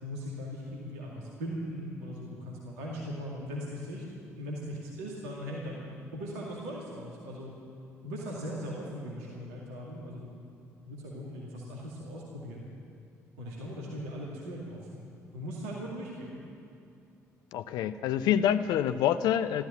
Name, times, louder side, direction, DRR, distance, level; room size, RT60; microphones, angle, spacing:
voice 1, 0.0-4.0 4.4-5.8 6.1-7.5 8.0-10.3 10.9-12.7 13.4-16.4, equal, 75° right, -4 dB, 2.2 m, -39 dB
voice 2, 17.5-19.6, left 10 dB, 60° left, 12 dB, 0.6 m, -26 dB
14.0 x 13.0 x 7.5 m, 2.6 s
figure-of-eight pair, 45°, 8 cm